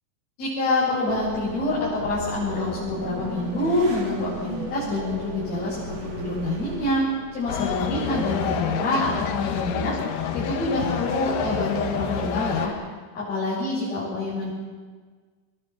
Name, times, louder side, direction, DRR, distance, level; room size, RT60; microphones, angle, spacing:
voice 1, 0.4-7.0 7.3-9.9 10.3-12.7 13.2-14.5, left 2 dB, 70° left, -9 dB, 9.4 m, -26 dB
sound 1, 1.1-7.6, right 1 dB, 40° right, 4.3 m, -36 dB
sound 2, 7.5-12.7, left 7 dB, 90° left, 3.5 m, -28 dB
29.0 x 22.0 x 6.0 m, 1.5 s
omnidirectional pair, 4.4 m